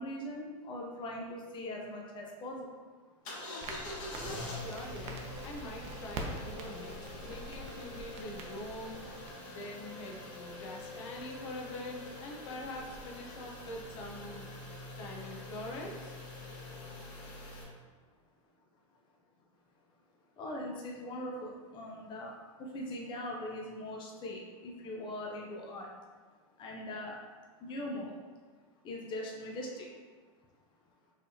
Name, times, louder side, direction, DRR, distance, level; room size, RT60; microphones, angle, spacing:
voice 1, 0.0-2.7 20.4-22.3 22.7-25.9 26.6-27.2 27.6-28.1 28.8-29.9, left 1 dB, 30° left, -1 dB, 0.7 m, -40 dB
sound 1, 3.2-17.6, left 1 dB, 50° left, 1.4 m, -45 dB
Crackle, 3.6-9.3, right 2 dB, 40° right, 0.7 m, -45 dB
voice 2, 4.1-9.0 9.5-14.5 15.0-16.2, left 1 dB, 65° left, 0 dB, 0.8 m, -44 dB
5.2 x 3.4 x 2.7 m, 1.5 s
supercardioid pair, 125°, 17 cm